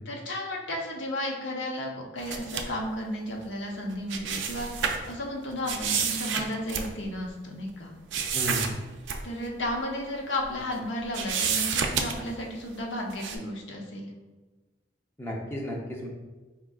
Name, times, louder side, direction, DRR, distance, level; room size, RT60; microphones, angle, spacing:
voice 1, 0.1-4.7 5.1-7.9 9.2-14.1, left 1 dB, 85° left, 0 dB, 0.7 m, -33 dB
sound 1, 2.2-2.8 3.9-5.1 5.7-7.3 8.1-8.7 9.1-9.2 9.6-9.7 10.4-10.8 11.1-12.4 13.1-13.4, right 6 dB, 85° right, 0.4 m, -29 dB
voice 2, 8.3-8.8 15.2-16.1, equal, 15° left, -2 dB, 0.6 m, -33 dB
4.6 x 3.6 x 2.3 m, 1.2 s
head